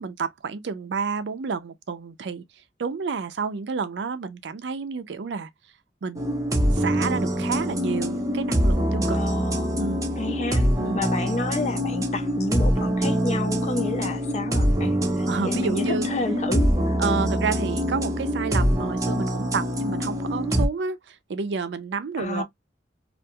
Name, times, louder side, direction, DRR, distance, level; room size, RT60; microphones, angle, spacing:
voice 1, 0.0-2.4 2.8-5.5 6.0-6.3 6.7-9.2 9.8-10.0 10.8-11.0 15.3-16.1 17.0-22.4, right 5 dB, 80° right, 0.4 m, -30 dB
sound 1, 6.2-20.7, equal, 20° right, 0.6 m, -24 dB
voice 2, 9.1-9.7 10.2-10.7 10.9-17.0 22.2-22.4, left 2 dB, 40° left, 0.5 m, -30 dB
2.4 x 2.2 x 2.7 m
head